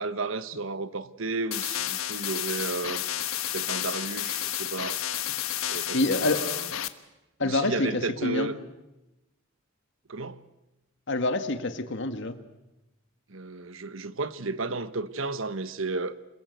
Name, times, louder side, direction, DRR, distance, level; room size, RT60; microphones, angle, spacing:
voice 1, 0.0-3.0 3.5-5.0 5.7-6.7 7.4-8.6 10.1-10.4 13.3-16.1, right 3 dB, 70° right, 1.2 m, -33 dB
sound 1, 1.5-6.9, left 12 dB, 90° left, 1.3 m, -31 dB
voice 2, 5.9-6.5 7.4-8.5 11.1-12.4, left 2 dB, 60° left, 1.8 m, -27 dB
27.5 x 22.0 x 8.1 m
head